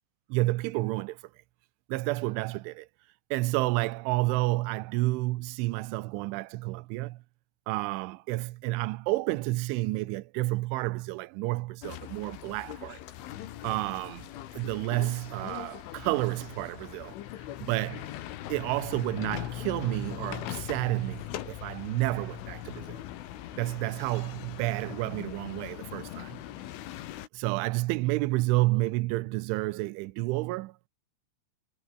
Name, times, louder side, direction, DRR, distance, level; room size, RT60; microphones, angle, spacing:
voice 1, 0.3-1.2 1.9-2.9 3.3-7.2 7.7-13.0 13.6-17.2 17.6-18.0 18.5-23.0 23.6-26.4 27.3-30.9, right 20 dB, 90° right, 3.2 m, -30 dB
sound 1, 11.8-27.3, left 13 dB, 85° left, 4.3 m, -41 dB
omnidirectional pair, 5.5 m